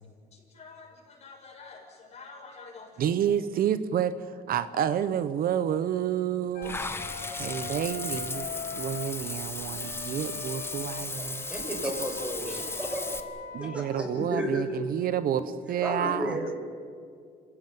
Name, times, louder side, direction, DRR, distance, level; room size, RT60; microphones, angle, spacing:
voice 1, 0.3-3.1 7.2-7.7, left 4 dB, 40° left, 0 dB, 7.4 m, -48 dB
voice 2, 3.0-12.6 13.5-16.5, right 9 dB, 60° right, 13 dB, 1.0 m, -30 dB
Wind instrument woodwind instrument, 6.5-9.2 9.7-14.3, left 6 dB, 65° left, 2.9 m, -42 dB
Water / Bathtub (filling or washing), 6.6-13.2, left 3 dB, 15° left, 1.6 m, -36 dB
voice 3, 11.5-13.1 13.6-14.7 15.8-16.6, equal, 5° right, 2 dB, 6.4 m, -33 dB
26.0 x 16.5 x 9.4 m, 2.2 s
cardioid pair, 110°, 17 cm